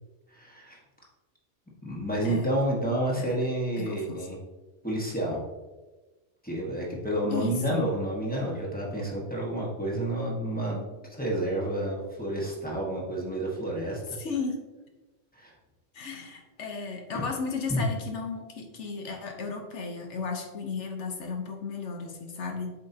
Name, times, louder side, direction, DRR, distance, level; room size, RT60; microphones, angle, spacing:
voice 1, 0.3-0.8 1.8-4.4 4.8-5.4 6.4-14.2 15.4-15.5 17.1-17.2 17.7-17.8, right 1 dB, 10° left, -4 dB, 1.4 m, -30 dB
voice 2, 3.8-4.3 7.3-7.9 14.2-14.6 15.9-22.7, left 4 dB, 75° left, 3 dB, 1.3 m, -34 dB
7.9 x 5.3 x 2.8 m, 1.2 s
omnidirectional pair, 1.2 m